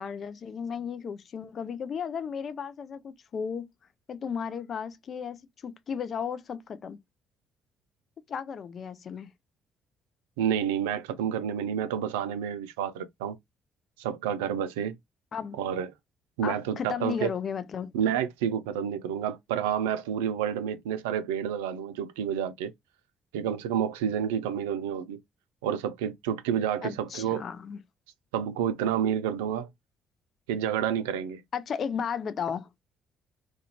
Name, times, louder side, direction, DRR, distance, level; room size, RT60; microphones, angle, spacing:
voice 1, 0.0-3.7 4.1-7.0 8.3-9.3 15.3-15.6 16.4-17.9 26.8-27.8 31.5-32.7, left 7 dB, 50° left, 0.4 m, -34 dB
voice 2, 10.4-13.4 14.0-15.0 15.6-15.9 16.4-17.3 17.9-22.7 23.3-25.2 25.6-27.4 28.3-29.7 30.5-31.4, right 9 dB, 75° right, 0.3 m, -29 dB
2.4 x 2.2 x 2.7 m
figure-of-eight pair, 45°, 0 cm